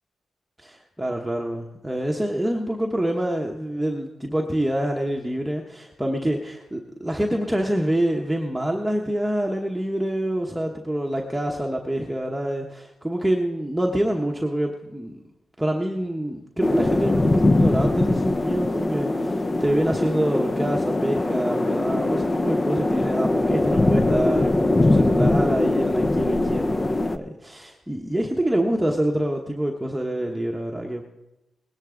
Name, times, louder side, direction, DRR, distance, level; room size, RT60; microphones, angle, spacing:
voice 1, 0.6-15.2 15.6-31.0, right 1 dB, 5° right, 0 dB, 1.1 m, -26 dB
sound 1, 16.6-27.2, left 2 dB, 25° left, 0.6 m, -21 dB
19.5 x 10.5 x 3.8 m, 0.95 s
cardioid pair, 75°, 0 cm